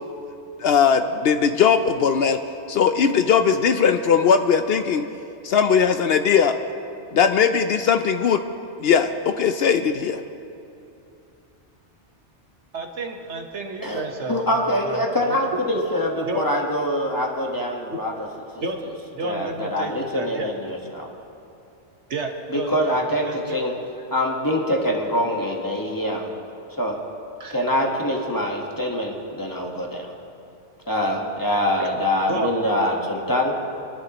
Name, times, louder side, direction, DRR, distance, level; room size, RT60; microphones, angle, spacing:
voice 1, 0.6-2.4 2.7-5.0 5.4-6.6 7.1-8.4 8.8-10.2, left 7 dB, 65° left, 8 dB, 0.7 m, -19 dB
voice 2, 12.7-15.0 15.3-15.8 16.2-16.4 18.6-18.8 19.1-20.5 22.1-23.6 27.4-27.6 31.8-31.9 32.3-32.5, right 3 dB, 75° right, 3 dB, 1.5 m, -31 dB
voice 3, 13.8-18.3 18.5-18.6 19.2-21.1 22.5-23.8 24.1-26.3 26.8-27.0 27.5-30.1 30.9-33.5, left 1 dB, 20° left, 0 dB, 1.3 m, -24 dB
24.0 x 11.0 x 2.9 m, 2.8 s
omnidirectional pair, 1.2 m